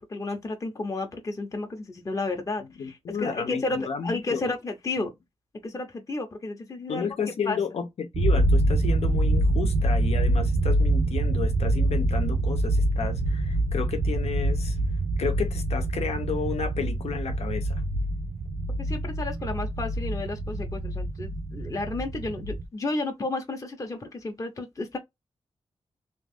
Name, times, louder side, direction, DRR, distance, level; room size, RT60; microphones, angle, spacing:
voice 1, 0.0-5.1 5.6-7.1 7.5-7.6 18.8-25.0, left 2 dB, 30° left, 0.7 m, -32 dB
voice 2, 2.8-4.5 5.0-5.1 6.9-14.8 15.2-17.8, left 6 dB, 85° left, 0.8 m, -32 dB
sound 1, 8.1-22.6, right 1 dB, 60° right, 0.7 m, -25 dB
3.0 x 2.4 x 3.4 m
wide cardioid pair, 120°, 11 cm